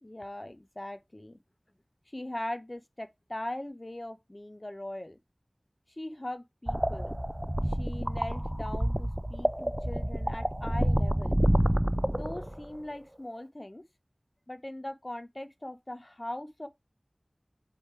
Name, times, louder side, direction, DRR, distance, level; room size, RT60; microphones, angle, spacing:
voice 1, 0.0-1.4 2.1-5.2 6.0-7.1 7.8-11.4 12.1-13.8 14.5-16.7, left 1 dB, 35° left, 0.7 m, -40 dB
sound 1, 6.7-12.8, equal, 15° right, 0.3 m, -28 dB
7.8 x 3.4 x 4.7 m
wide cardioid pair, 45°, 0 cm